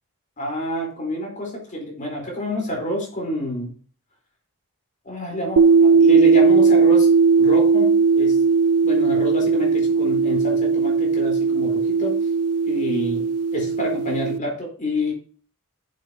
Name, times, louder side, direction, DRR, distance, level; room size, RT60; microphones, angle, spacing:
voice 1, 0.4-3.8 5.0-7.1 7.4-8.4 8.8-12.2 12.7-15.1, left 1 dB, 35° left, -1 dB, 4.1 m, -28 dB
sound 1, 5.6-14.4, right 5 dB, 80° right, 0.5 m, -18 dB
9.1 x 7.7 x 2.9 m, 0.40 s
head